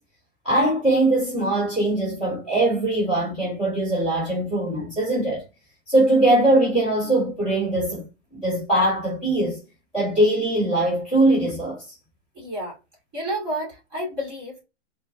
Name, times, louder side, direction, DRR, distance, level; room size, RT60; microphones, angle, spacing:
voice 1, 0.4-5.4 5.9-8.1 8.3-9.6 9.9-11.8, right 1 dB, 5° left, 1.9 m, -21 dB
voice 2, 12.3-12.8 13.1-14.6, equal, 15° right, 1.6 m, -30 dB
4.4 x 2.2 x 2.6 m
hypercardioid pair, 180°, 35 cm